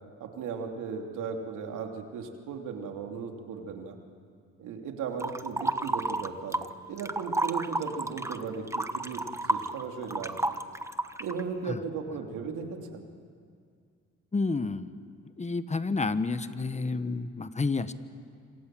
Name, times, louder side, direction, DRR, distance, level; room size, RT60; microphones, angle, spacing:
voice 1, 0.2-4.0 4.6-10.5 11.2-13.1, right 5 dB, 85° right, 3 dB, 3.1 m, -36 dB
sound 1, 5.2-6.7 7.0-11.4, right 2 dB, 10° right, 1.2 m, -31 dB
voice 2, 14.3-14.9 15.4-17.9, left 3 dB, 25° left, 12 dB, 1.3 m, -30 dB
27.5 x 26.5 x 7.8 m, 2.2 s
cardioid pair, 90°, 30 cm